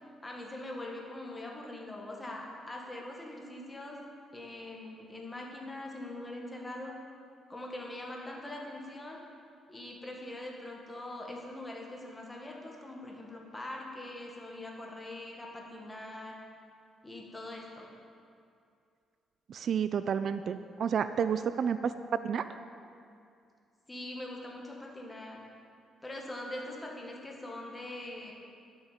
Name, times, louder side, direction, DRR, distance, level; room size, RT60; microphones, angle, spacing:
voice 1, 0.2-4.0 4.3-6.9 7.5-9.2 9.7-16.4 17.0-18.0 23.9-25.4 26.0-28.3, left 1 dB, 15° left, -1 dB, 1.7 m, -42 dB
voice 2, 19.5-22.4, right 7 dB, 60° right, 12 dB, 0.3 m, -30 dB
10.5 x 6.8 x 5.0 m, 2.4 s
cardioid pair, 90°, 0 cm